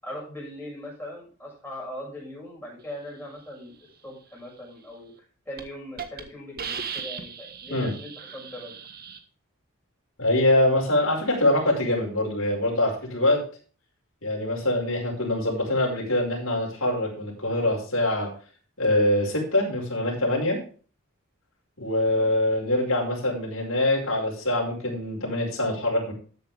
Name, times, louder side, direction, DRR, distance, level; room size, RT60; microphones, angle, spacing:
voice 1, 0.0-3.7 4.0-5.1 5.4-8.8 22.0-22.3, left 1 dB, 10° left, -4 dB, 6.5 m, -40 dB
Hiss, 5.0-5.2 5.6-5.7 6.0-6.2 6.6-9.2, right 6 dB, 45° right, 1.5 m, -37 dB
voice 2, 10.2-13.4 14.2-18.3 18.8-20.6 21.8-26.1, left 1 dB, 65° left, -1 dB, 5.1 m, -24 dB
13.5 x 8.1 x 3.5 m, 0.39 s
head